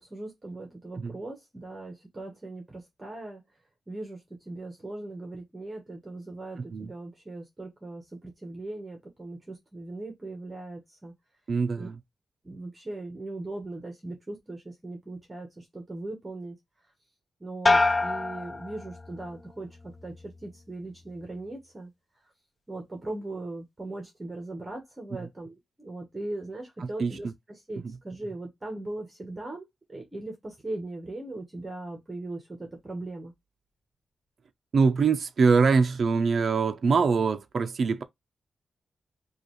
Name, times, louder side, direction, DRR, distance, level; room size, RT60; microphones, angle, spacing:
voice 1, 0.0-3.4 3.9-4.2 4.5-11.1 11.8-11.9 12.4-16.5 17.4-19.7 20.0-21.9 22.7-29.6 29.9-33.3, right 2 dB, 20° right, 1.1 m, -39 dB
voice 2, 6.6-6.9 11.5-12.0 25.2-25.3 26.8-27.3 27.8-28.0 34.7-38.0, right 5 dB, 50° right, 0.6 m, -24 dB
sound 1, 17.7-19.4 19.8-20.4, left 3 dB, 15° left, 0.4 m, -26 dB
5.0 x 2.5 x 3.1 m
wide cardioid pair, 165°, 0 cm